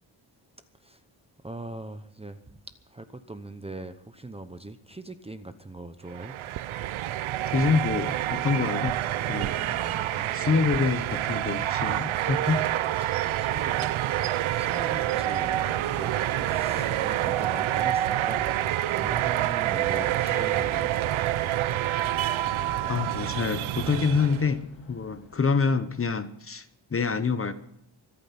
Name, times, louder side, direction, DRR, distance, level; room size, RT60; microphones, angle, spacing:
voice 1, 1.4-2.4 2.9-6.3 13.2-13.9 14.5-15.5 15.9-18.5 18.9-20.9, right 2 dB, 15° right, 10 dB, 0.8 m, -40 dB
sound 1, 6.1-24.6, right 13 dB, 85° right, 0.7 m, -27 dB
voice 2, 7.5-9.0 9.3-9.6 10.3-12.6 22.9-27.5, left 5 dB, 30° left, 11 dB, 0.9 m, -26 dB
sound 2, 8.1-15.8, right 4 dB, 30° right, 1.7 m, -48 dB
Bell, 14.2-25.9, left 4 dB, 65° left, 7.9 m, -45 dB
24.5 x 9.0 x 5.8 m, 0.68 s
wide cardioid pair, 170°, 47 cm